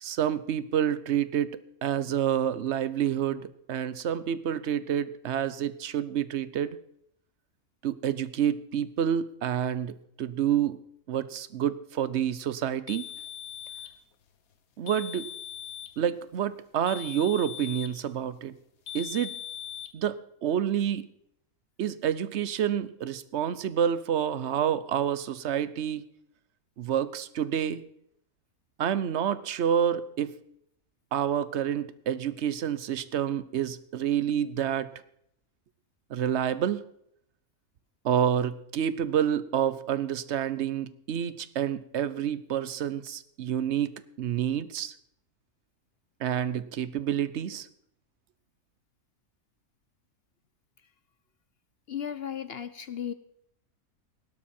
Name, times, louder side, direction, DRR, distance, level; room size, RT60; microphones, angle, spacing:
voice 1, 0.0-6.8 7.8-10.8 11.1-13.0 14.8-15.3 16.0-18.5 18.9-19.4 19.9-21.0 21.8-26.0 26.8-27.8 28.8-30.3 31.1-34.9 36.1-36.8 38.0-44.9 46.2-47.7, right 9 dB, 60° right, 16 dB, 0.9 m, -28 dB
sound 1, 12.9-14.0 14.9-16.0 16.9-18.0 18.9-19.9, left 11 dB, 75° left, 1.5 m, -40 dB
voice 2, 51.9-53.1, left 9 dB, 55° left, 13 dB, 0.7 m, -35 dB
17.0 x 12.0 x 4.4 m, 0.73 s
omnidirectional pair, 1.5 m